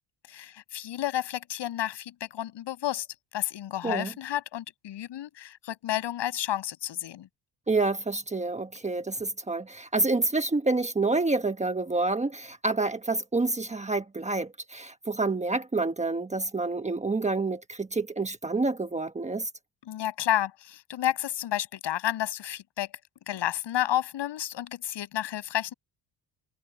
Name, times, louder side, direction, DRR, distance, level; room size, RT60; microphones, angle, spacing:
voice 1, 0.3-3.1 3.3-7.3 19.9-22.9 23.3-25.7, left 12 dB, 75° left, 7.6 m, -31 dB
voice 2, 7.7-19.5, right 3 dB, 15° right, 1.3 m, -28 dB
cardioid pair, 145°, 43 cm